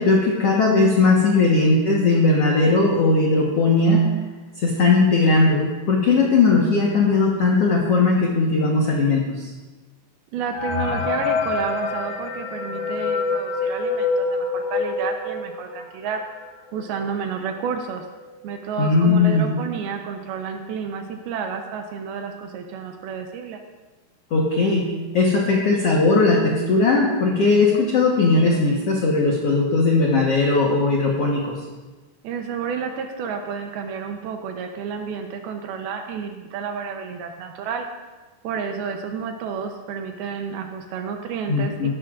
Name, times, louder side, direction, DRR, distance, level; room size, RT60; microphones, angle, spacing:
voice 1, 0.0-4.1 4.6-9.5 18.8-19.5 24.3-31.5 41.5-41.9, left 3 dB, 90° left, -2 dB, 1.3 m, -18 dB
voice 2, 10.3-16.2 16.7-18.0 18.4-23.6 32.2-37.9 38.4-41.9, right 6 dB, 75° right, 4 dB, 2.5 m, -30 dB
sound 1, 10.5-16.0 16.4-16.5 16.7-16.9 17.6-17.7 18.1-18.4, left 4 dB, 65° left, 2.7 m, -26 dB
15.5 x 12.0 x 2.5 m, 1.2 s
omnidirectional pair, 4.9 m